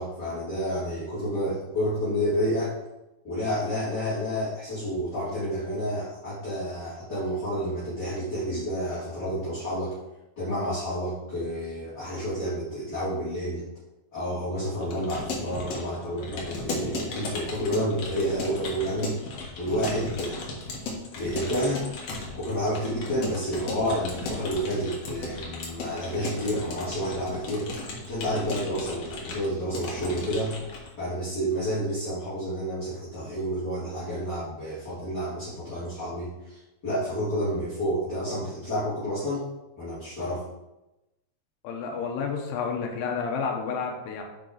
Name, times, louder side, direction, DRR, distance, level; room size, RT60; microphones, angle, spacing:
voice 1, 0.0-2.8 3.2-10.0 10.4-13.6 14.1-19.3 19.6-20.5 21.2-21.8 22.4-30.6 31.0-39.4 39.8-40.4, equal, 30° left, -12 dB, 2.5 m, -30 dB
Keyboard (musical) / Computer keyboard, 14.8-30.9, left 3 dB, 60° left, 1.7 m, -36 dB
voice 2, 41.6-44.2, left 5 dB, 75° left, 2 dB, 2.8 m, -30 dB
7.7 x 5.9 x 3.9 m, 0.96 s
omnidirectional pair, 5.1 m